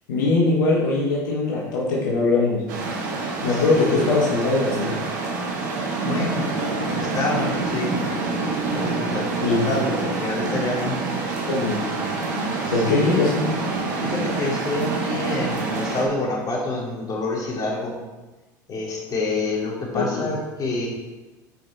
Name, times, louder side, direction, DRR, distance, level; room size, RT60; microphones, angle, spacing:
voice 1, 0.1-2.6 3.4-5.0 9.4-9.6 11.5-11.8 12.7-13.5 19.9-20.3, left 3 dB, 75° left, -4 dB, 1.8 m, -21 dB
sound 1, 2.7-16.1, right 3 dB, 75° right, 1.7 m, -26 dB
voice 2, 3.5-4.1 6.0-6.5 6.9-8.0 8.7-11.0 12.6-13.3 14.0-18.0 18.7-20.9, left 2 dB, 40° left, -3 dB, 3.1 m, -27 dB
9.2 x 5.5 x 4.4 m, 1.1 s
hypercardioid pair, 80°, 10 cm